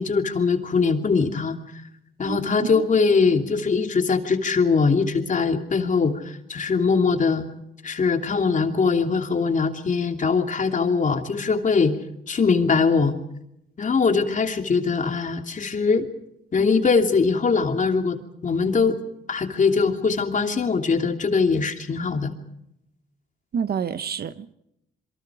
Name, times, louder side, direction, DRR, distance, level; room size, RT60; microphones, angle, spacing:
voice 1, 0.0-1.6 2.2-7.5 7.8-11.9 12.3-13.1 13.8-16.1 16.5-18.2 18.4-19.0 19.3-22.3, left 4 dB, 40° left, 2.9 m, -21 dB
voice 2, 2.2-2.7 23.5-24.5, right 7 dB, 50° right, 1.1 m, -29 dB
27.5 x 23.0 x 5.0 m
cardioid pair, 90°, 20 cm